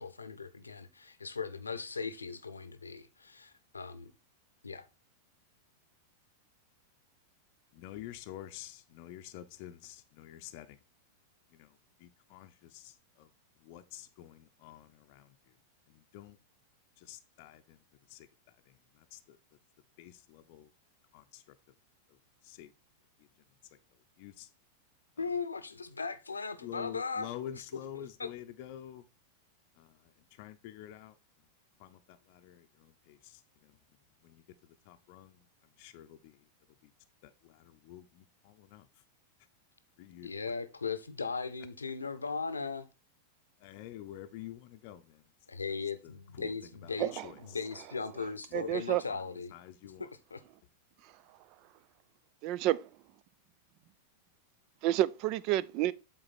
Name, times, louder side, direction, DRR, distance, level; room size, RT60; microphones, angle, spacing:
voice 1, 0.0-4.1 4.6-4.9 25.2-27.6 27.9-28.3 40.2-42.9 45.5-47.1 47.4-49.5 49.8-50.4, left 4 dB, 85° left, 0.7 m, -38 dB
voice 2, 7.7-10.8 11.5-11.7 12.0-13.3 13.6-15.3 15.9-16.4 17.0-17.8 18.1-18.3 18.7-19.4 20.0-20.7 21.1-21.4 22.4-22.7 24.2-24.5 26.6-29.0 29.8-30.0 30.4-31.2 31.8-33.7 34.2-34.4 34.9-35.4 35.8-36.4 36.8-36.9 37.2-38.9 40.0-40.3 43.6-45.2 46.4-46.5 46.8-46.9 47.2-47.3 48.7-48.8 49.1-49.2 49.5-50.0, left 12 dB, 50° left, 0.6 m, -48 dB
voice 3, 47.0-47.3 48.5-49.0 51.0-51.4 52.4-53.0 54.8-55.9, right 14 dB, 45° right, 0.4 m, -30 dB
7.9 x 3.9 x 4.1 m
figure-of-eight pair, 95°, 0 cm